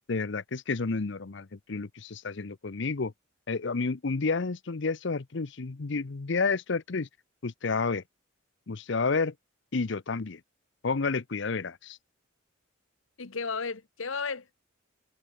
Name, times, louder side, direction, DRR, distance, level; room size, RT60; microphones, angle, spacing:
voice 1, 0.1-3.1 3.5-7.1 7.4-8.0 8.7-9.3 9.7-10.4 10.8-12.0, left 4 dB, 60° left, 0.7 m, -30 dB
voice 2, 13.2-14.6, left 5 dB, 80° left, 1.2 m, -34 dB
head